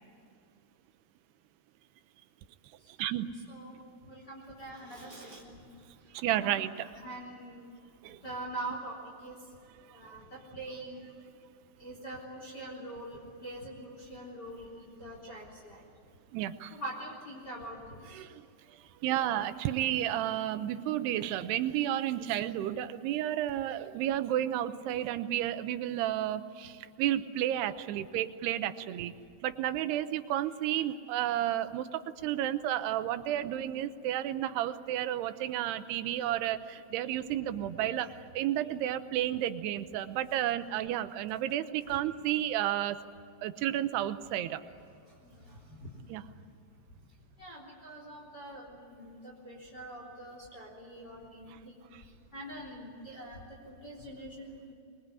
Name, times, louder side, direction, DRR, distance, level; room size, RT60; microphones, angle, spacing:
voice 1, 4.0-5.6 6.3-6.5 7.0-7.7 8.2-9.4 9.9-11.1 11.8-15.9 16.7-18.3 37.3-37.7 44.9-46.5 47.4-54.7, right 1 dB, 25° left, -2 dB, 3.8 m, -44 dB
voice 2, 6.1-6.7 8.0-8.2 16.3-16.8 18.1-18.4 19.0-29.2 29.4-43.0 43.4-44.6 46.1-46.2 51.5-51.6 51.9-52.0, right 12 dB, 90° right, 11 dB, 3.0 m, -32 dB
24.5 x 22.0 x 9.7 m, 2.4 s
omnidirectional pair, 4.6 m